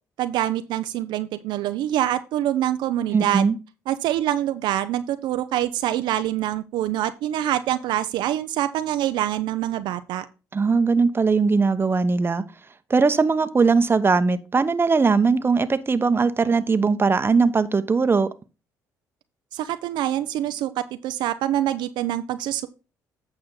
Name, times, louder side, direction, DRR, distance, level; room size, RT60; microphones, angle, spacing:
voice 1, 0.2-3.5 3.9-10.2 19.5-22.7, right 12 dB, 75° right, 0.6 m, -25 dB
voice 2, 3.1-3.6 10.5-12.4 12.9-18.3, right 4 dB, 30° right, 1.0 m, -20 dB
8.8 x 6.3 x 3.9 m
supercardioid pair, 60°, 8 cm